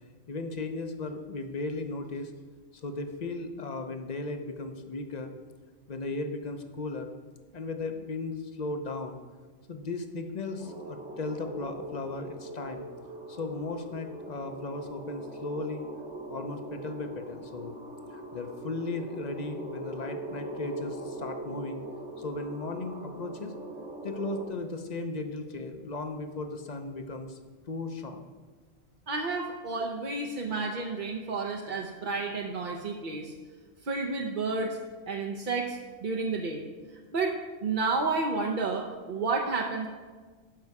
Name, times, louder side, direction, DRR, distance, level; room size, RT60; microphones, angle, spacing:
voice 1, 0.3-2.3 2.7-5.3 5.9-7.1 7.5-9.2 9.7-12.9 13.3-15.9 16.3-17.8 18.1-21.8 22.2-23.5 24.0-27.4 27.7-28.3, left 3 dB, 40° left, 6 dB, 0.7 m, -36 dB
sound 1, 10.6-24.5, right 1 dB, 65° right, 1.9 m, -41 dB
voice 2, 29.1-33.3 33.8-34.8 35.1-36.6 37.1-37.3 37.6-39.9, right 3 dB, 45° right, 0 dB, 0.8 m, -31 dB
12.5 x 5.5 x 4.8 m, 1.4 s
omnidirectional pair, 1.3 m